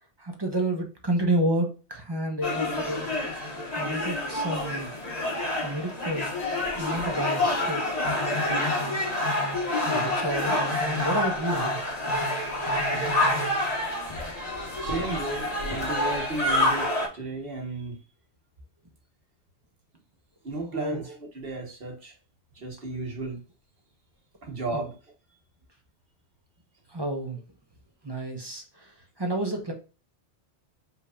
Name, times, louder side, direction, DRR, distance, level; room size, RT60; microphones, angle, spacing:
voice 1, 0.2-3.1 3.8-4.9 5.6-6.3 6.8-7.8 9.7-11.8 20.7-21.0 24.7-24.8 26.9-27.4 28.0-28.9 29.2-29.7, right 1 dB, 25° right, 0.8 m, -30 dB
sound 1, 2.4-17.1, left 1 dB, 35° left, 1.3 m, -27 dB
voice 2, 14.8-18.0 20.4-22.1 22.6-23.4 24.4-24.9, right 2 dB, 55° right, 1.6 m, -34 dB
5.4 x 3.4 x 2.4 m
omnidirectional pair, 1.2 m